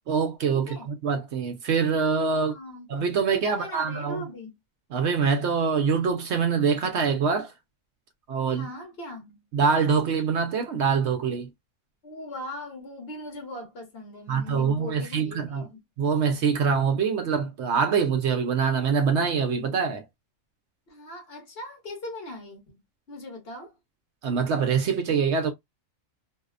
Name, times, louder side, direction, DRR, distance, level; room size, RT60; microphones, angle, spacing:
voice 1, 0.1-2.5 2.9-4.2 4.9-7.5 8.3-8.7 9.5-11.5 14.3-15.7 16.0-20.0 24.2-25.5, right 6 dB, 65° right, 0.8 m, -24 dB
voice 2, 2.3-2.9 3.2-4.5 8.5-9.4 12.0-15.8 20.9-22.8 23.1-23.8, left 2 dB, 50° left, 1.1 m, -39 dB
2.7 x 2.1 x 2.4 m
omnidirectional pair, 1.4 m